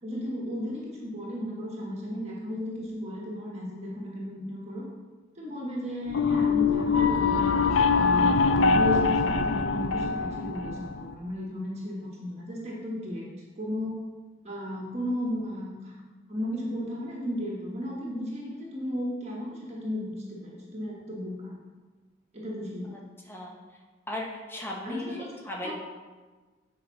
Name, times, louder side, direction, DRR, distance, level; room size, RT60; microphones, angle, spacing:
voice 1, 0.0-4.9 5.3-7.5 7.9-13.2 13.6-13.9 14.4-16.0 16.3-21.5 22.3-23.0 24.8-25.3 25.6-25.7, left 1 dB, 35° right, -3 dB, 1.4 m, -34 dB
sound 1, 6.1-11.1, left 4 dB, 90° left, 0.5 m, -23 dB
voice 2, 24.1-25.0 25.4-25.7, left 1 dB, 10° left, -2 dB, 1.3 m, -36 dB
8.9 x 5.0 x 5.7 m, 1.3 s
head